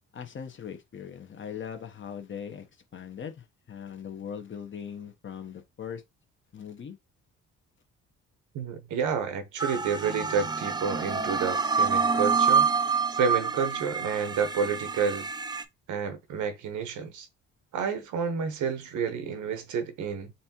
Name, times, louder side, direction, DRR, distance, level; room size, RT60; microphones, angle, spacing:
voice 1, 0.1-6.0 6.5-7.0, left 7 dB, 40° left, 0.9 m, -40 dB
voice 2, 8.5-12.7 13.1-15.3 15.9-17.3 17.7-20.3, right 6 dB, 75° right, 1.0 m, -30 dB
sound 1, 9.6-15.6, right 5 dB, 15° right, 0.4 m, -27 dB
4.2 x 3.4 x 2.9 m
cardioid pair, 90°, 30 cm